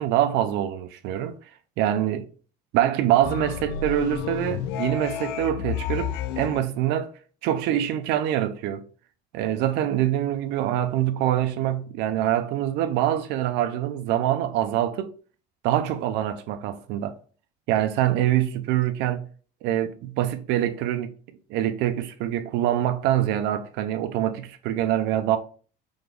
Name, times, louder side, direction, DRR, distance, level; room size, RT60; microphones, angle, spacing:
voice 1, 0.0-1.3 1.8-2.3 2.7-7.1 7.4-8.8 9.3-15.1 15.6-17.1 17.7-19.3 19.6-21.1 21.5-25.4, right 12 dB, 65° right, 0.6 m, -24 dB
sound 1, 3.2-6.6, left 9 dB, 65° left, 0.4 m, -31 dB
3.9 x 3.5 x 3.4 m
cardioid pair, 165°, 19 cm